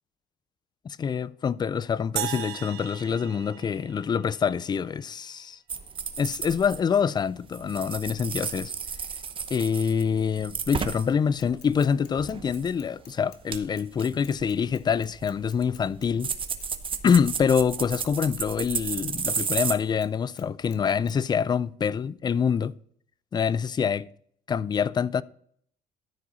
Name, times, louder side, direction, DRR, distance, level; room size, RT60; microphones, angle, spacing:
voice 1, 0.9-5.6 6.2-8.7 9.5-16.3 17.0-22.7 23.3-24.1 24.5-25.2, left 7 dB, 25° left, 0.3 m, -26 dB
sound 1, 2.2-4.6, right 15 dB, 75° right, 0.6 m, -36 dB
sound 2, 5.7-7.2 7.5-11.1 11.4-12.7 13.1-13.2 13.5-19.7, right 6 dB, 30° right, 0.7 m, -33 dB
Bicycle / Mechanisms, 11.4-18.1 18.4-20.1 20.4-20.8 21.1-21.2, left 12 dB, 85° left, 0.9 m, -52 dB
13.0 x 4.8 x 4.0 m
cardioid pair, 110°, 17 cm